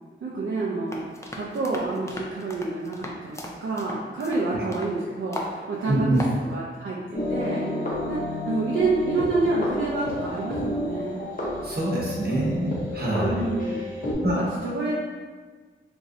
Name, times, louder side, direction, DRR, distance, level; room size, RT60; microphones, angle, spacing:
voice 1, 0.2-6.2 6.5-7.6 8.1-8.2 8.5-11.3 13.3-13.8 14.2-15.0, right 3 dB, 65° right, -6 dB, 0.4 m, -28 dB
sound 1, 0.9-5.0 5.3-5.6 5.9-6.4, left 1 dB, 15° left, 0.3 m, -37 dB
voice 2, 5.9-6.2 11.6-13.4 14.2-14.6, right 1 dB, 45° right, -5 dB, 0.9 m, -25 dB
sound 2, 7.1-14.1, left 1 dB, 40° left, 0.8 m, -31 dB
3.0 x 2.6 x 2.5 m, 1.5 s
wide cardioid pair, 90°, 21 cm